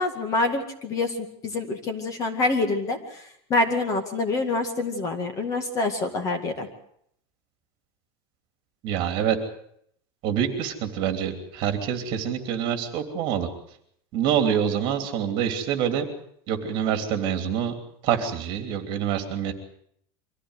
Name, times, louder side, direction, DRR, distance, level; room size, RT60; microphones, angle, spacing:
voice 1, 0.0-6.7, left 3 dB, 25° left, 6 dB, 2.1 m, -26 dB
voice 2, 8.8-9.4 10.2-13.5 14.1-16.0 16.5-17.7 18.0-19.5, right 9 dB, 40° right, 7 dB, 3.1 m, -26 dB
24.0 x 15.5 x 8.2 m, 0.69 s
supercardioid pair, 170°, 14 cm